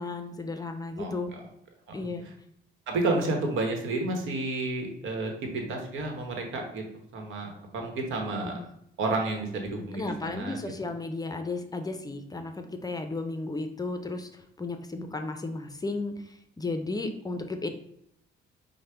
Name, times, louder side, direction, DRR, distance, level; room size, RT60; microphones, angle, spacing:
voice 1, 0.0-1.3 1.9-2.2 8.6-8.7 9.9-17.7, left 3 dB, 20° left, 7 dB, 0.5 m, -34 dB
voice 2, 2.9-6.8 7.1-8.6 9.0-10.6, right 2 dB, 80° right, 3 dB, 1.0 m, -30 dB
4.9 x 2.1 x 4.4 m, 0.73 s
cardioid pair, 90°, 20 cm